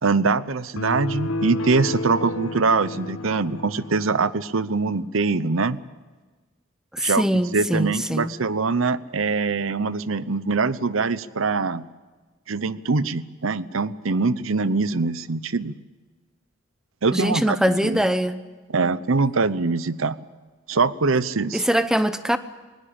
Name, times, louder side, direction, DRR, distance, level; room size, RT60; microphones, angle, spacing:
voice 1, 0.0-5.8 7.0-11.8 12.5-15.7 17.0-18.0 18.7-20.2 20.7-21.6, right 4 dB, 75° right, 16 dB, 0.8 m, -23 dB
sound 1, 0.8-4.3, left 1 dB, 80° left, 1.2 m, -30 dB
voice 2, 6.9-8.3 17.1-18.4 21.5-22.4, equal, 5° right, 11 dB, 0.8 m, -22 dB
20.5 x 19.0 x 8.8 m, 1.3 s
head